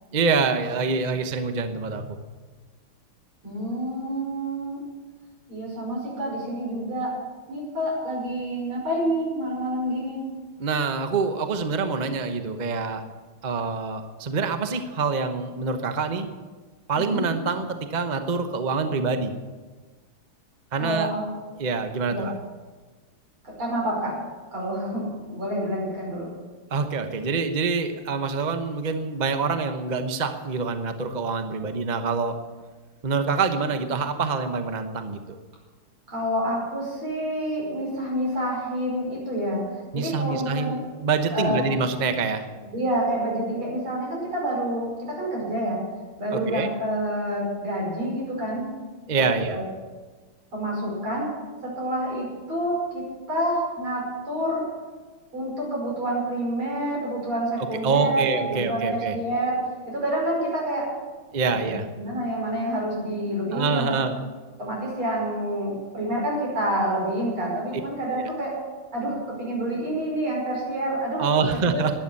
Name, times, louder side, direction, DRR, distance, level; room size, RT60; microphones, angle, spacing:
voice 1, 0.1-2.2 10.6-13.0 13.4-16.3 16.9-19.3 20.7-21.1 21.6-22.3 26.7-32.4 33.0-35.4 39.9-42.5 46.3-46.7 49.1-49.6 57.8-59.2 61.3-61.9 63.5-64.2 68.1-68.3 71.2-71.9, right 4 dB, 40° right, 7 dB, 0.6 m, -26 dB
voice 2, 3.4-4.8 5.5-7.2 7.5-10.3 17.0-17.3 20.8-21.2 22.1-22.3 23.4-24.1 24.5-26.3 36.1-39.7 39.9-40.8 41.3-41.6 42.6-45.8 46.2-48.7 49.1-49.6 50.5-54.7 55.3-60.9 61.5-61.7 62.0-64.0 64.6-68.6 68.9-71.8, right 1 dB, 70° right, -3 dB, 6.2 m, -28 dB
12.0 x 10.0 x 9.9 m, 1.4 s
omnidirectional pair, 2.4 m